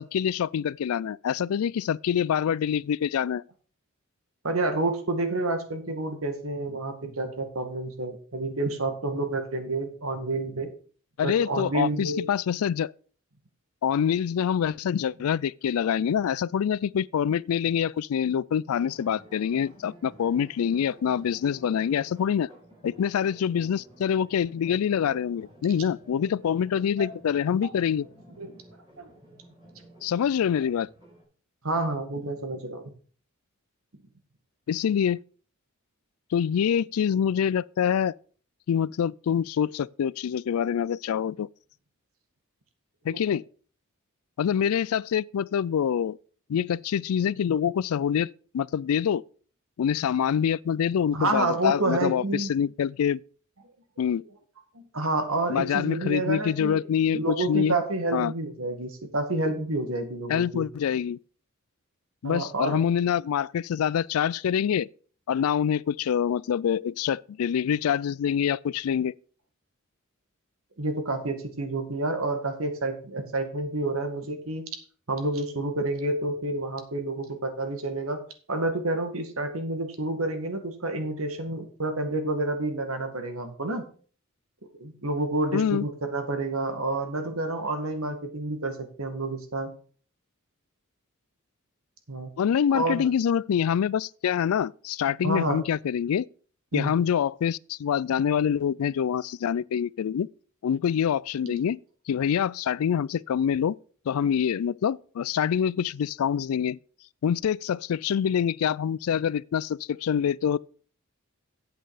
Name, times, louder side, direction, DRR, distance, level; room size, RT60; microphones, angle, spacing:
voice 1, 0.0-3.4 11.2-12.9 13.8-22.5 22.8-28.1 30.0-30.9 34.7-35.2 36.3-38.1 38.7-41.5 43.0-43.4 44.4-46.2 46.5-48.3 48.5-49.2 49.8-53.2 54.0-54.2 55.5-57.7 58.1-58.3 60.3-61.2 62.2-64.9 65.3-69.1 85.5-85.9 92.4-96.3 96.7-100.3 100.6-101.8 102.1-103.8 104.1-106.8 107.2-110.6, left 8 dB, 90° left, 0.3 m, -25 dB
voice 2, 4.4-10.7 11.2-12.3 27.0-27.1 27.6-27.7 28.4-28.5 29.0-29.1 31.6-32.9 43.1-43.3 51.1-52.5 54.7-56.8 57.1-60.7 62.2-62.8 70.8-74.6 75.1-78.2 78.5-83.9 84.8-89.7 92.1-92.3 92.7-93.1 95.2-95.6 96.7-97.0 101.5-101.6, right 2 dB, 80° right, 2.0 m, -29 dB
sound 1, 18.7-31.2, right 1 dB, 20° right, 5.8 m, -52 dB
8.8 x 7.8 x 4.9 m
head